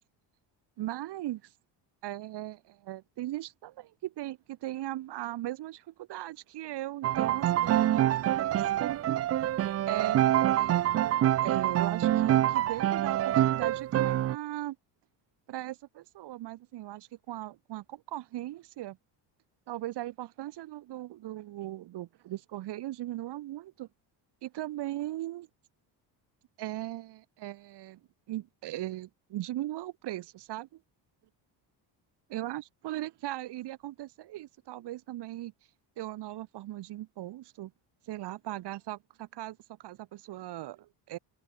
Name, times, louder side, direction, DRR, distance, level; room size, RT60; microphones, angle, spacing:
voice 1, 0.8-1.5 2.0-9.0 9.9-11.1 11.4-14.8 15.5-19.0 19.7-23.9 24.4-25.5 26.6-28.0 28.3-30.8 32.3-35.5 36.0-37.7 38.1-41.2, right 15 dB, 60° right, 6.6 m, -38 dB
Piano, 7.0-14.3, right 12 dB, 35° right, 0.5 m, -26 dB
cardioid pair, 165°, 45 cm